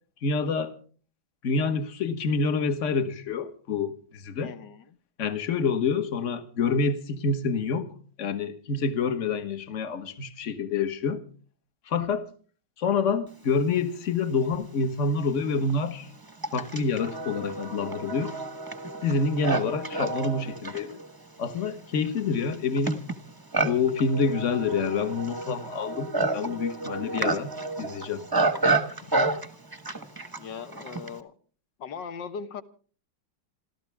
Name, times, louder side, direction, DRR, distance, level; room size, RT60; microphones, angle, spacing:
voice 1, 0.2-0.7 1.4-4.5 5.2-7.9 8.2-11.2 11.9-12.3 12.8-16.1 16.5-18.3 19.0-21.0 21.4-23.0 23.6-28.2, left 4 dB, 40° left, 1.5 m, -27 dB
voice 2, 4.4-4.9 30.4-31.3 31.8-32.6, left 6 dB, 60° left, 1.8 m, -39 dB
Livestock farm animals working animals, 14.4-14.5 15.3-31.2, right 3 dB, 15° right, 0.9 m, -30 dB
28.0 x 13.0 x 3.4 m
omnidirectional pair, 2.2 m